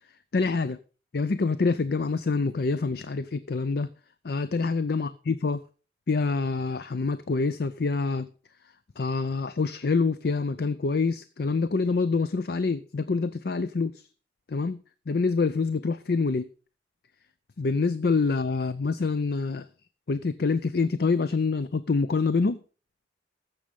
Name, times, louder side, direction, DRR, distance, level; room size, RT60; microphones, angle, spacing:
voice 1, 0.3-0.8 1.1-3.9 4.2-5.6 6.1-8.3 9.0-14.0 14.5-14.8 15.1-16.5 17.6-19.6 20.1-22.6, left 4 dB, 55° left, 0.5 m, -26 dB
15.0 x 6.3 x 5.3 m
head